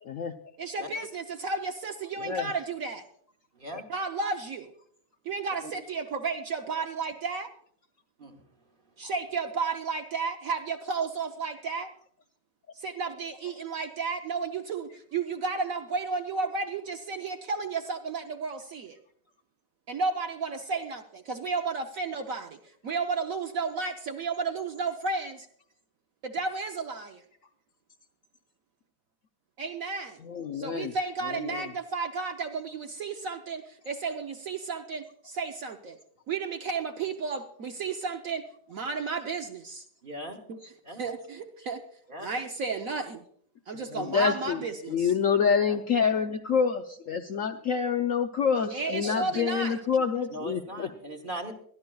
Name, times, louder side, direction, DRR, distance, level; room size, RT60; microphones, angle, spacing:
voice 1, 0.0-0.3 2.2-2.5 3.7-3.8 9.0-9.1 30.2-30.9 31.2-31.7 43.7-50.9, left 6 dB, 65° left, 5 dB, 0.8 m, -27 dB
voice 2, 0.6-3.0 3.9-4.7 5.2-7.5 9.0-11.9 12.7-19.0 19.9-22.6 22.8-25.5 26.2-27.2 29.6-30.2 30.5-36.0 36.3-39.8 40.5-40.6 41.0-41.8 42.2-43.2 43.7-45.1 48.7-49.7, right 4 dB, 60° right, 5 dB, 0.9 m, -33 dB
voice 3, 40.0-40.4 40.8-41.0 42.1-42.3 45.6-45.8 50.3-51.5, right 1 dB, 35° right, 4 dB, 1.0 m, -39 dB
21.5 x 13.0 x 2.3 m, 0.63 s
omnidirectional pair, 1.9 m